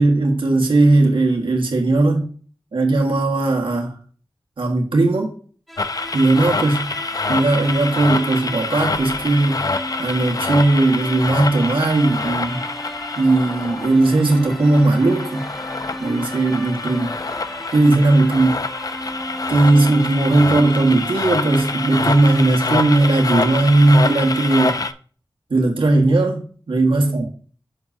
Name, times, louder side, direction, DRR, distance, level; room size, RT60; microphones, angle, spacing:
voice 1, 0.0-2.3 2.7-3.9 4.6-5.3 6.1-6.9 7.3-9.6 10.0-12.6 13.2-15.5 16.0-17.2 17.7-18.7 19.5-24.8 25.5-27.3, right 2 dB, 85° right, 1.8 m, -17 dB
sound 1, 5.7-24.9, equal, ahead, 0.8 m, -35 dB
sound 2, 5.8-24.9, left 3 dB, 45° left, 0.5 m, -26 dB
9.9 x 7.3 x 2.8 m
wide cardioid pair, 60°, 8 cm